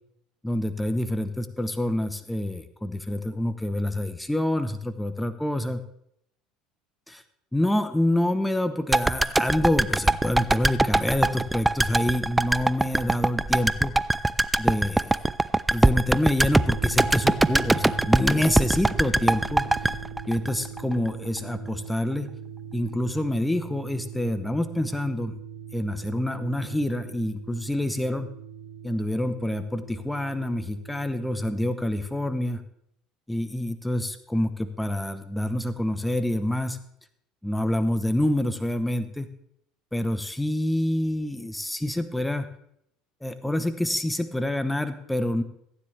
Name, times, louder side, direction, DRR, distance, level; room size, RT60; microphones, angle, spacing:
voice 1, 0.4-5.8 7.1-7.2 7.5-13.9 14.6-15.2 15.7-19.7 20.3-22.3 22.7-25.4 25.7-28.3 28.8-32.6 33.3-36.8 37.4-39.3 39.9-42.5 43.2-45.4, left 1 dB, 5° left, 11 dB, 0.9 m, -27 dB
sound 1, 8.9-21.1 21.4-21.5, right 2 dB, 10° right, 0.4 m, -22 dB
sound 2, 16.5-32.5, right 7 dB, 80° right, 2.2 m, -40 dB
15.0 x 9.7 x 3.3 m, 0.73 s
hypercardioid pair, 75°, 0 cm